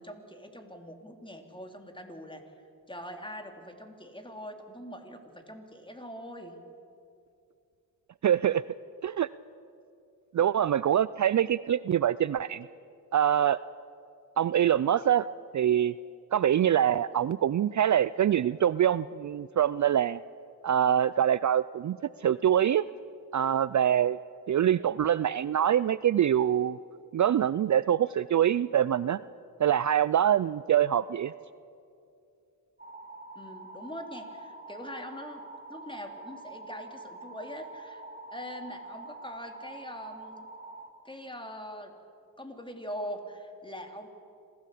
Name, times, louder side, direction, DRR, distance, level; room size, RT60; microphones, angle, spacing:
voice 1, 0.0-2.4 2.9-6.6 33.3-35.4 35.7-38.0 38.3-40.5 41.0-41.9 42.4-44.1, equal, 15° left, 4 dB, 3.4 m, -42 dB
voice 2, 8.2-8.6 9.0-9.3 10.3-12.6 13.1-13.6 14.4-15.3 15.5-15.9 16.3-20.2 20.6-22.8 23.3-24.2 24.5-26.8 27.1-29.2 29.6-31.3, right 10 dB, 50° right, 17 dB, 0.5 m, -24 dB
sound 1, 32.8-40.9, right 2 dB, 25° right, 2.9 m, -46 dB
26.5 x 16.0 x 8.5 m, 2.6 s
cardioid pair, 55°, 39 cm